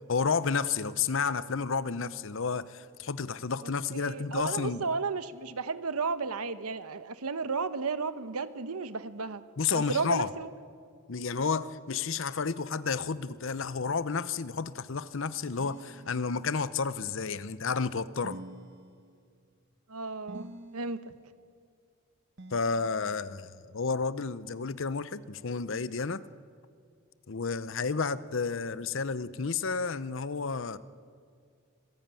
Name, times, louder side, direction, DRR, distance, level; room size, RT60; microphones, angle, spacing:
voice 1, 0.1-4.8 9.6-10.3 11.1-18.4 22.5-26.2 27.3-30.8, left 5 dB, 60° left, 0.7 m, -31 dB
voice 2, 3.9-9.4 9.7-10.5 19.9-20.5 20.7-21.1, right 4 dB, 85° right, 1.0 m, -33 dB
sound 1, 15.6-16.8 18.2-19.4 20.3-21.2 22.4-23.3, right 1 dB, 50° right, 1.1 m, -48 dB
25.0 x 16.0 x 9.0 m
head